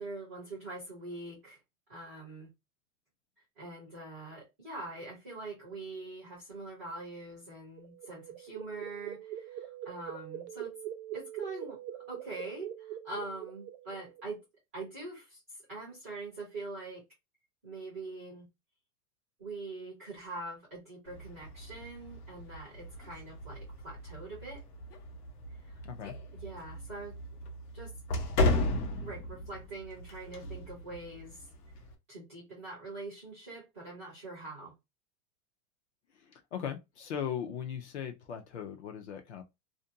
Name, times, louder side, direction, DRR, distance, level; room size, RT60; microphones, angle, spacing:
voice 1, 0.0-1.6 1.9-2.5 3.6-10.8 11.1-11.8 12.1-14.4 14.7-15.4 15.7-17.0 17.6-18.5 19.4-24.6 25.6-25.8 26.4-27.2 27.7-28.0 29.0-31.5 32.1-34.7, right 2 dB, 10° right, 0.4 m, -43 dB
sound 1, 7.6-14.3, right 11 dB, 80° right, 0.6 m, -43 dB
sound 2, 21.0-31.9, left 2 dB, 70° left, 0.9 m, -36 dB
voice 2, 25.8-26.1 36.3-39.4, left 8 dB, 45° left, 0.5 m, -38 dB
2.5 x 2.2 x 2.5 m
supercardioid pair, 170°, 47 cm